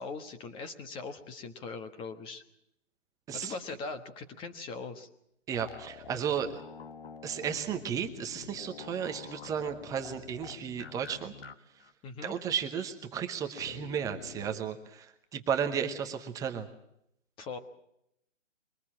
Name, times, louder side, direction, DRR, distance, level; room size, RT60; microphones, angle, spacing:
voice 1, 0.0-2.4 3.3-5.1 12.0-12.3 17.4-17.6, left 4 dB, 15° left, 8 dB, 1.3 m, -40 dB
sound 1, 5.5-11.5 11.8-11.9 13.6-14.6, left 7 dB, 50° left, 1.4 m, -47 dB
voice 2, 5.5-6.6 7.2-11.3 12.2-16.7, right 8 dB, 10° right, 5 dB, 0.9 m, -34 dB
23.0 x 19.0 x 7.5 m, 0.79 s
hypercardioid pair, 145°, 37 cm